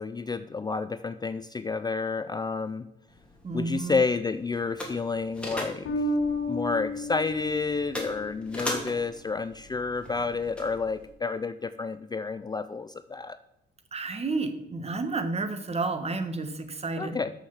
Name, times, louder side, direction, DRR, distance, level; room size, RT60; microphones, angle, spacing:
voice 1, 0.0-2.9 3.5-6.1 6.5-13.4 17.0-17.3, left 4 dB, 20° left, 12 dB, 0.4 m, -30 dB
sound 1, 3.1-11.1, left 1 dB, 5° left, 2.8 m, -40 dB
voice 2, 3.4-4.0 13.9-17.2, right 3 dB, 30° right, 9 dB, 1.3 m, -31 dB
Bass guitar, 5.9-8.9, left 1 dB, 80° left, 1.7 m, -32 dB
6.6 x 6.4 x 7.1 m, 0.81 s
cardioid pair, 90°, 20 cm